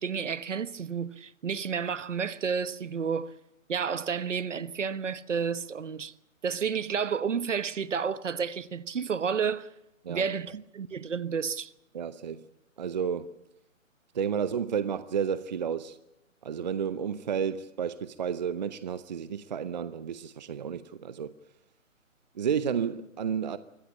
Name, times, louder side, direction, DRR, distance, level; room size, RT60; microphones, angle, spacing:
voice 1, 0.0-3.3 3.7-6.1 6.4-9.7 10.1-11.7, right 6 dB, 60° right, 1.2 m, -31 dB
voice 2, 11.9-12.5 12.8-13.3 14.1-16.0 16.4-21.3 22.3-23.6, right 7 dB, 35° right, 0.7 m, -31 dB
24.0 x 16.0 x 8.4 m
figure-of-eight pair, 145°, 41 cm